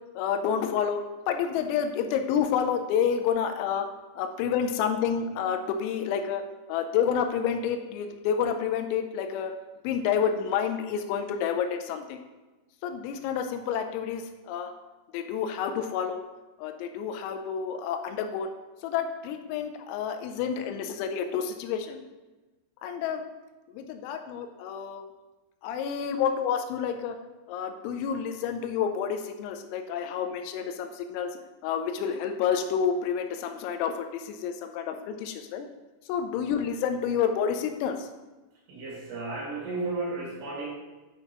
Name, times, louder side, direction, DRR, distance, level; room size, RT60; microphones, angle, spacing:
voice 1, 0.2-1.0 1.3-3.9 4.2-6.4 6.7-9.5 9.8-12.2 12.8-14.7 15.1-16.2 16.6-18.5 18.8-22.0 22.8-23.2 23.7-25.0 25.6-27.1 27.5-31.3 31.6-35.7 36.1-38.1, left 7 dB, 85° left, 6 dB, 3.3 m, -29 dB
voice 2, 38.7-40.7, right 3 dB, 65° right, -5 dB, 3.5 m, -33 dB
10.5 x 5.8 x 3.0 m, 1.2 s
omnidirectional pair, 6.0 m